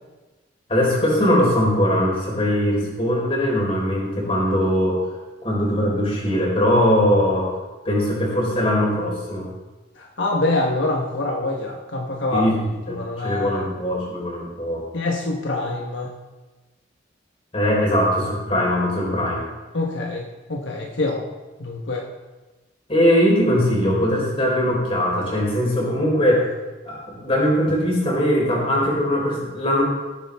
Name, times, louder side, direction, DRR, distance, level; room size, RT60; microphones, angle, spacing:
voice 1, 0.7-5.0 5.4-7.5 7.8-9.5 12.3-12.6 12.9-14.8 17.5-19.4 22.9-26.5 26.8-29.8, equal, 30° left, -4 dB, 4.3 m, -20 dB
voice 2, 10.0-12.5 12.9-13.7 14.9-16.1 19.7-20.2 20.5-21.3 21.6-22.1, left 2 dB, 80° left, 0 dB, 1.2 m, -25 dB
18.0 x 8.8 x 3.6 m, 1.2 s
head